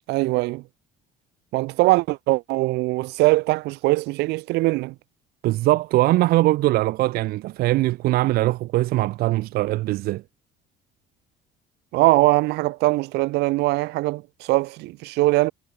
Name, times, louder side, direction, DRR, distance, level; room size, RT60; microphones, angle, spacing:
voice 1, 0.1-0.6 1.5-4.9 11.9-15.5, right 21 dB, 85° right, 2.7 m, -21 dB
voice 2, 5.4-10.2, right 17 dB, 65° right, 1.1 m, -21 dB
cardioid pair, 170°, 17 cm